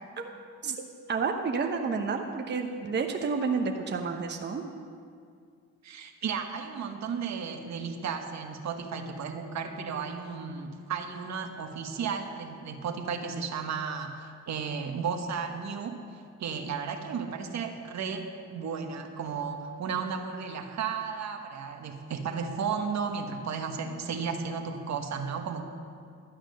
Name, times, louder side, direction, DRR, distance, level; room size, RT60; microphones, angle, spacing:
voice 1, 0.6-4.6, right 5 dB, 35° right, 3 dB, 1.0 m, -30 dB
voice 2, 5.8-25.6, right 6 dB, 65° right, 5 dB, 1.3 m, -34 dB
12.5 x 8.8 x 6.5 m, 2.2 s
cardioid pair, 90°, 30 cm